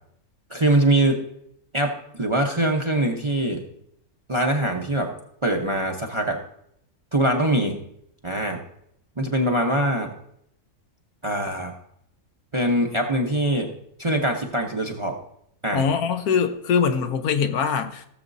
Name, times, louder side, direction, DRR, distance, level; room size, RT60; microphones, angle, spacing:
voice 1, 0.5-1.2 1.7-3.6 4.3-5.1 5.4-6.4 7.1-7.8 8.2-8.6 9.2-10.1 11.2-11.7 12.5-13.7 14.0-15.2 15.6-15.8, right 1 dB, 25° right, 0.7 m, -23 dB
voice 2, 15.7-18.1, left 6 dB, 80° left, 1.3 m, -22 dB
17.0 x 7.3 x 2.6 m
omnidirectional pair, 1.6 m